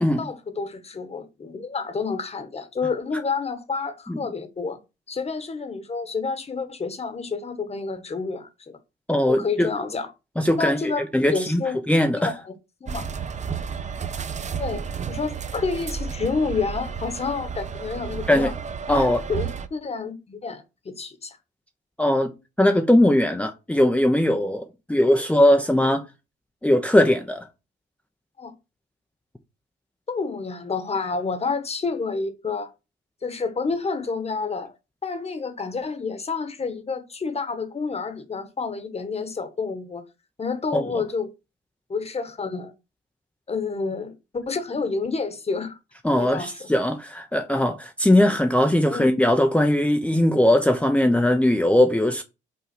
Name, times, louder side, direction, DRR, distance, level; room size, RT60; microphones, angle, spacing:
voice 1, 0.2-4.8 5.1-8.8 9.3-10.1 10.5-11.0 11.3-11.8 12.2-12.5 12.8-13.1 14.6-18.5 18.9-21.4 23.3-23.4 28.4-28.5 30.1-32.7 33.2-34.7 35.0-40.0 40.4-41.3 41.9-42.7 43.5-45.8 46.2-46.7 48.9-49.1, left 4 dB, 30° left, 1.3 m, -29 dB
voice 2, 9.1-9.7 10.4-11.6 11.9-12.3 18.3-18.5 18.9-19.2 22.0-22.3 22.6-26.0 26.6-27.5 40.7-40.8 46.0-52.2, left 1 dB, 5° left, 0.7 m, -20 dB
sound 1, 12.9-19.7, right 6 dB, 35° right, 0.7 m, -32 dB
5.7 x 3.7 x 6.0 m
cardioid pair, 90°, 20 cm